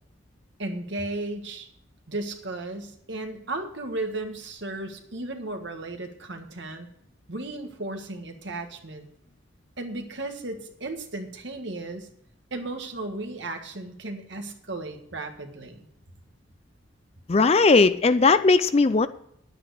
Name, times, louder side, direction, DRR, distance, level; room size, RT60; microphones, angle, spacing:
voice 1, 0.6-1.7 2.1-6.9 7.3-9.1 9.8-12.1 12.5-15.9, right 2 dB, 60° right, 5 dB, 1.6 m, -35 dB
voice 2, 17.3-19.1, left 3 dB, 30° left, 13 dB, 0.4 m, -18 dB
10.5 x 8.9 x 6.5 m, 0.70 s
head